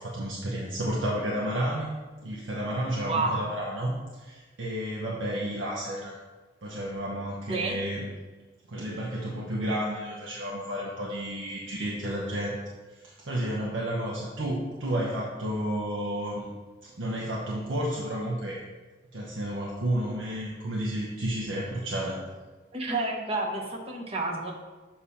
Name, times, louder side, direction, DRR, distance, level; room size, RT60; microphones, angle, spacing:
voice 1, 0.0-2.0 2.2-6.2 6.6-8.1 8.7-12.6 12.9-16.5 16.8-18.6 19.1-22.2, right 1 dB, 75° right, -4 dB, 0.8 m, -31 dB
voice 2, 3.1-3.4 7.5-7.8 22.7-24.5, right 3 dB, 30° right, 0 dB, 0.9 m, -29 dB
6.7 x 2.9 x 5.6 m, 1.3 s
head